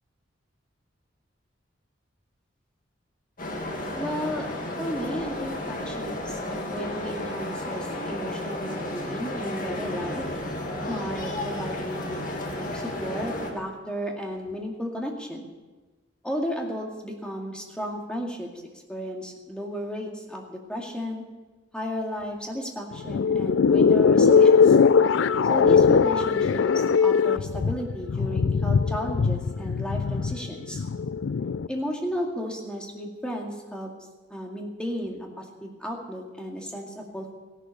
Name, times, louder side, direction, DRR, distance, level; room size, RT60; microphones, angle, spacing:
sound 1, 3.4-13.5, left 1 dB, 45° left, 2.1 m, -33 dB
voice 1, 3.9-4.5 4.8-10.2 10.8-12.2 12.5-15.5 16.2-18.5 18.9-21.3 21.7-24.8 25.5-30.8 31.7-33.9 34.3-37.3, equal, 5° left, 0 dB, 2.3 m, -33 dB
sound 2, 22.9-31.7, left 6 dB, 75° left, 0.4 m, -20 dB
16.0 x 11.5 x 6.7 m, 1.2 s
head